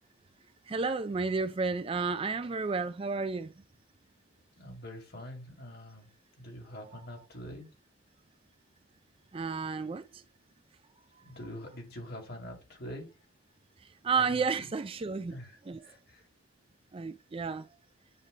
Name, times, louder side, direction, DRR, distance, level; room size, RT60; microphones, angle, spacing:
voice 1, 0.7-3.5 9.3-10.0 14.0-15.4 15.7-15.8 16.9-17.6, right 4 dB, 25° right, 0.3 m, -31 dB
voice 2, 4.6-7.7 11.2-13.2 14.1-14.7 15.3-16.3, equal, 50° left, 2.4 m, -45 dB
9.5 x 3.2 x 3.9 m
head